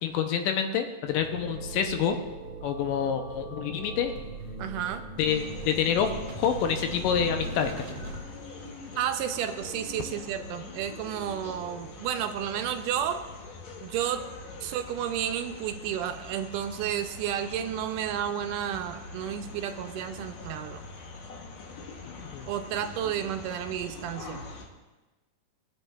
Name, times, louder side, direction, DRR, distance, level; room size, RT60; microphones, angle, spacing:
voice 1, 0.0-2.2 2.6-4.1 5.2-6.1 6.4-7.9 22.2-22.5, left 8 dB, 90° left, 6 dB, 2.4 m, -27 dB
sound 1, 1.1-8.2, right 2 dB, 60° right, 1.7 m, -40 dB
voice 2, 4.6-5.1 9.0-13.3 13.8-14.3 14.6-20.8 22.5-24.4, right 10 dB, 85° right, 7 dB, 2.1 m, -32 dB
sound 2, 5.2-24.7, left 3 dB, 65° left, 2.1 m, -43 dB
20.0 x 8.3 x 2.4 m, 1.2 s
omnidirectional pair, 3.8 m